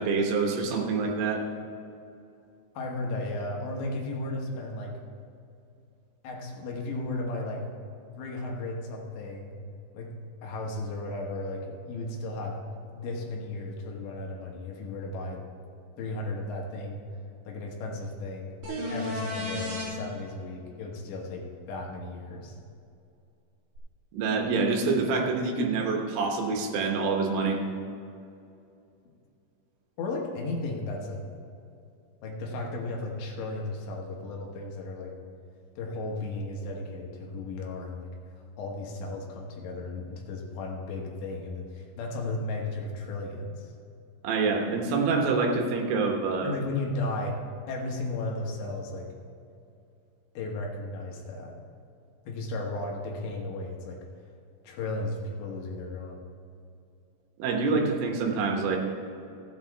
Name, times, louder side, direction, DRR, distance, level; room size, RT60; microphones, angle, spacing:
voice 1, 0.0-1.4 24.1-27.6 44.2-46.5 57.4-58.8, right 4 dB, 80° right, 1 dB, 3.8 m, -26 dB
voice 2, 2.7-5.0 6.2-7.7 8.1-9.6 9.9-10.1 10.4-12.6 12.9-15.5 16.0-17.0 17.5-18.5 18.9-22.6 30.0-31.2 32.2-35.1 35.8-38.1 38.6-43.7 46.4-47.4 47.7-49.1 50.3-51.5 52.3-54.0 54.6-56.2, left 2 dB, 70° left, 0 dB, 3.2 m, -35 dB
sound 1, 18.6-19.9 23.8-23.9, left 1 dB, 50° right, 4.1 m, -33 dB
15.0 x 8.2 x 4.7 m, 2.6 s
omnidirectional pair, 5.9 m